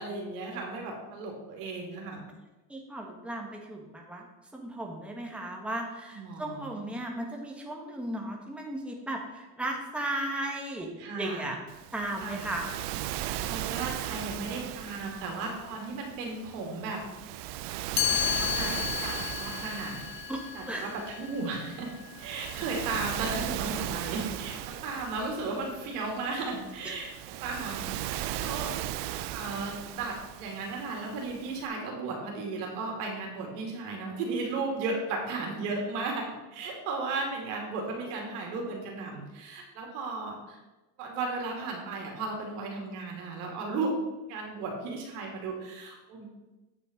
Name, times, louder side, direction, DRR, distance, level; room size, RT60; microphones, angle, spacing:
voice 1, 0.0-2.2 6.1-6.8 11.0-11.6 12.2-12.5 13.1-17.0 18.0-20.0 20.5-21.9 22.2-27.1 27.4-28.7 29.3-40.6 41.0-44.0 44.3-46.3, right 3 dB, 85° right, 0 dB, 2.6 m, -35 dB
voice 2, 2.7-4.3 4.5-10.9 11.2-11.6 11.9-12.7 20.3-20.9 26.8-26.9, right 1 dB, ahead, 0 dB, 1.4 m, -35 dB
Waves surf, 11.7-31.7, right 13 dB, 65° right, 0.6 m, -37 dB
Chime, 18.0-23.8, left 12 dB, 50° left, 1.0 m, -34 dB
9.1 x 5.8 x 5.1 m, 1.1 s
cardioid pair, 120°, 45 cm